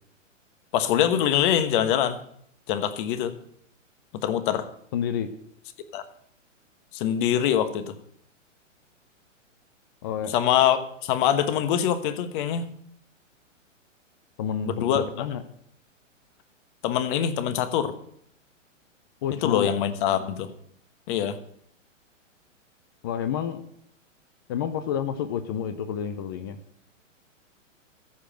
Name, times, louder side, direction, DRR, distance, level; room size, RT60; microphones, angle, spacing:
voice 1, 0.7-2.2 2.7-3.3 4.2-4.7 5.9-6.0 6.9-7.9 10.3-12.7 14.6-15.0 16.8-17.9 19.4-20.5 21.1-21.4, left 10 dB, 40° left, 12 dB, 1.2 m, -24 dB
voice 2, 4.9-5.3 10.0-10.3 14.4-15.4 19.2-19.7 23.0-23.6 24.5-26.6, left 8 dB, 20° left, 12 dB, 0.3 m, -29 dB
14.0 x 5.0 x 7.6 m, 0.68 s
hypercardioid pair, 125°, 39 cm